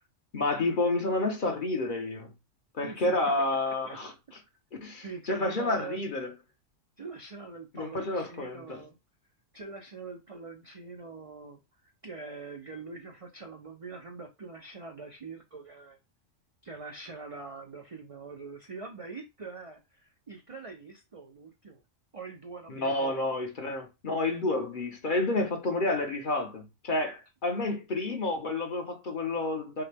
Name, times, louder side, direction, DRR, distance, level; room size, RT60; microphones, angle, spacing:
voice 1, 0.3-2.3 2.7-4.1 4.8-6.3 7.7-8.8 22.7-29.8, left 2 dB, 45° left, 0.9 m, -30 dB
voice 2, 2.8-4.2 5.0-6.1 7.0-9.0 9.5-16.0 16.6-21.8 22.1-23.3, right 4 dB, 45° right, 0.4 m, -44 dB
5.7 x 2.2 x 3.3 m
omnidirectional pair, 1.3 m